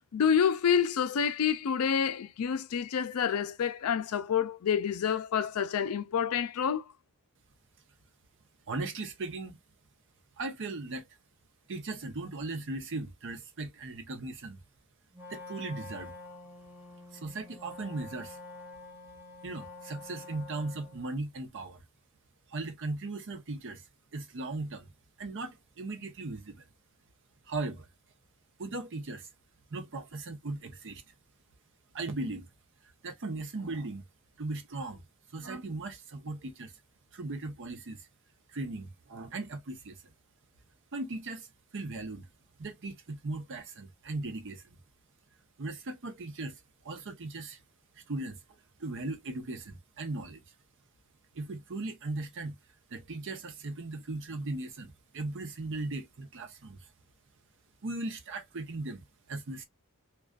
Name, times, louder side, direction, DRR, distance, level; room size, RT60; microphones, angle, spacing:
voice 1, 0.1-6.8, left 7 dB, 70° left, 0.4 m, -28 dB
voice 2, 8.7-9.6 10.4-11.1 11.7-14.6 15.3-16.1 17.1-18.4 19.4-21.8 22.5-23.8 24.1-24.9 25.2-26.6 27.5-27.9 28.6-29.3 29.7-31.0 31.9-32.5 33.0-34.0 34.4-35.0 35.3-36.7 37.1-38.0 38.5-40.0 40.9-41.5 41.7-42.3 42.6-44.6 45.6-46.6 46.8-47.6 48.0-48.4 48.8-50.4 51.3-52.5 52.9-56.8 57.8-59.6, right 2 dB, 60° right, 0.7 m, -38 dB
Wind instrument woodwind instrument, 15.1-21.1, left 3 dB, 10° right, 0.6 m, -47 dB
2.4 x 2.3 x 2.2 m
head